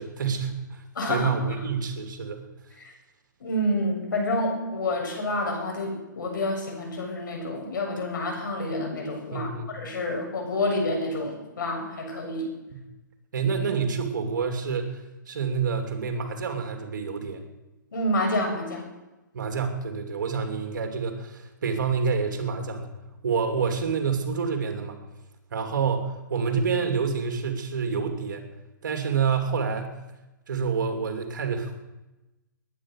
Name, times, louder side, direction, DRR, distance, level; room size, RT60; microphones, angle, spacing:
voice 1, 0.0-0.8 1.1-2.4 9.3-9.8 13.3-15.0 15.3-17.5 19.3-22.9 23.2-25.0 25.5-28.5 28.8-29.9 30.5-31.8, right 5 dB, 65° right, 5 dB, 3.2 m, -28 dB
voice 2, 1.0-1.3 3.4-12.5 17.9-18.8, left 1 dB, 70° left, 1 dB, 7.3 m, -28 dB
21.0 x 10.0 x 6.6 m, 1.0 s
hypercardioid pair, 135°, 11 cm